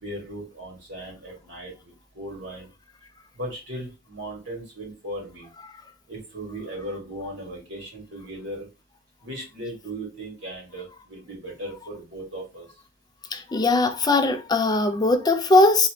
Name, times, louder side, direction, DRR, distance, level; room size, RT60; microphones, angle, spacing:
voice 1, 0.0-2.7 3.3-5.5 6.1-8.7 9.2-12.7, right 1 dB, 80° right, 2.0 m, -37 dB
voice 2, 13.3-15.9, left 2 dB, 20° left, 0.4 m, -20 dB
4.0 x 2.8 x 3.0 m
head